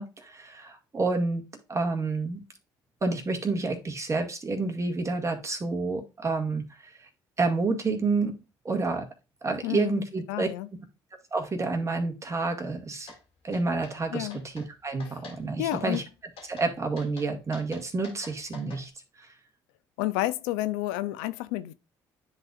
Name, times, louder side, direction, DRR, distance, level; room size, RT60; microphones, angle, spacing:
voice 1, 0.0-1.4 1.7-2.4 3.0-6.9 7.4-8.3 8.6-9.1 9.4-10.5 11.3-13.1 13.4-16.0 16.5-18.9 19.2-19.3, right 3 dB, 30° right, 1.9 m, -29 dB
voice 2, 9.6-10.0 10.3-10.7 14.1-14.4 15.0-15.2 15.6-16.0 20.0-21.7, left 16 dB, 90° left, 0.4 m, -30 dB
sound 1, 13.1-13.2 13.5-13.9 14.3-14.7 15.0-15.4 15.7-16.1 16.4-16.7 17.0-18.8, left 4 dB, 70° left, 2.4 m, -47 dB
10.0 x 4.1 x 2.4 m
supercardioid pair, 65°, 10 cm